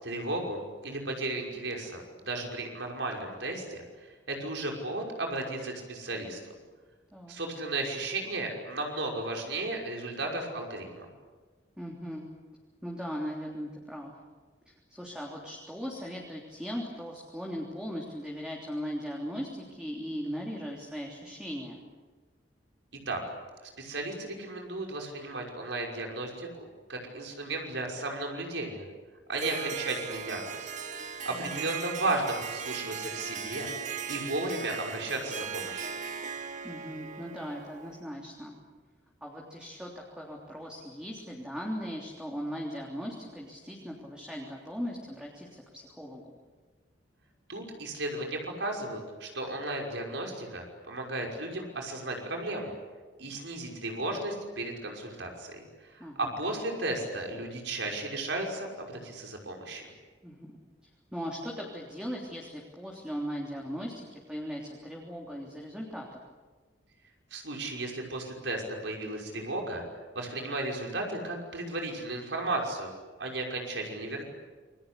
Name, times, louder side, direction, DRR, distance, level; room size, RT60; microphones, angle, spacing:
voice 1, 0.0-6.4 7.3-11.1 23.1-23.2 23.8-26.5 26.9-28.9 29.3-30.7 31.3-33.7 34.1-35.9 47.5-52.8 53.2-59.8 67.3-69.8 70.1-72.9 73.2-74.3, right 2 dB, 80° right, 1 dB, 5.8 m, -34 dB
voice 2, 11.8-12.2 12.8-14.1 14.7-21.8 31.3-31.7 36.6-38.6 39.2-46.4 56.0-56.3 60.2-60.6 61.1-66.2, equal, 5° right, -2 dB, 3.4 m, -38 dB
Harp, 29.3-38.1, right 6 dB, 45° right, 1.7 m, -38 dB
28.5 x 23.0 x 8.4 m, 1.4 s
head